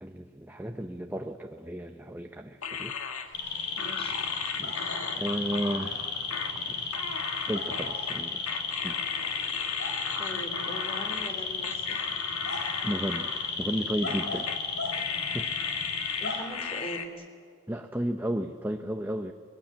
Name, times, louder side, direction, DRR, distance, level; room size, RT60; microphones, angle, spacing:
voice 1, 0.0-2.9 4.6-6.1 6.7-8.4 8.8-9.0 12.8-14.5 14.9-15.5 17.7-19.3, right 1 dB, 10° right, 4 dB, 0.7 m, -34 dB
sound 1, 2.6-11.3 11.6-13.8 14.1-14.6 14.9-17.1, left 6 dB, 80° left, 1.5 m, -36 dB
sound 2, 3.3-16.4, left 5 dB, 55° left, 4.5 m, -33 dB
voice 2, 3.7-4.1 10.2-12.0 16.2-17.3, equal, 30° left, 5 dB, 3.0 m, -40 dB
22.0 x 18.0 x 9.0 m, 2.1 s
head